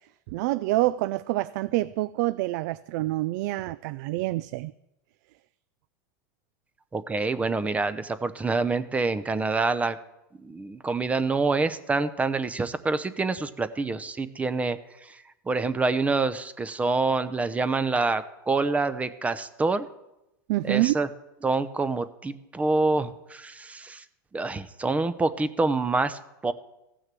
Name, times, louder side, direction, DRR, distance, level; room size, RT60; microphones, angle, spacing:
voice 1, 0.3-4.7 20.5-21.0, right 17 dB, 65° right, 17 dB, 0.4 m, -26 dB
voice 2, 6.9-10.0 10.4-19.9 20.6-21.1 21.4-24.0 24.3-26.5, right 3 dB, 15° right, 13 dB, 0.7 m, -26 dB
15.5 x 6.4 x 7.6 m, 0.92 s
supercardioid pair, 130°, 10 cm